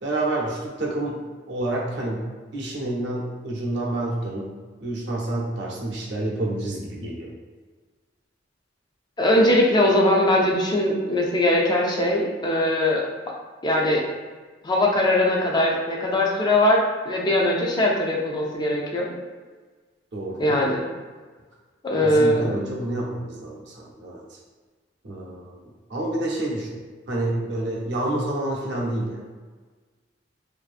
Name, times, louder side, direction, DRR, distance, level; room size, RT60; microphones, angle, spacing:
voice 1, 0.0-1.2 1.5-2.2 2.5-4.5 4.8-7.3 20.1-20.6 22.0-24.2 25.0-29.4, right 1 dB, 65° right, -3 dB, 0.6 m, -28 dB
voice 2, 9.2-13.0 13.6-14.0 14.6-16.8 17.1-19.1 20.4-20.8 21.8-22.6, left 1 dB, 25° left, -2 dB, 0.4 m, -21 dB
2.6 x 2.4 x 2.4 m, 1.4 s
head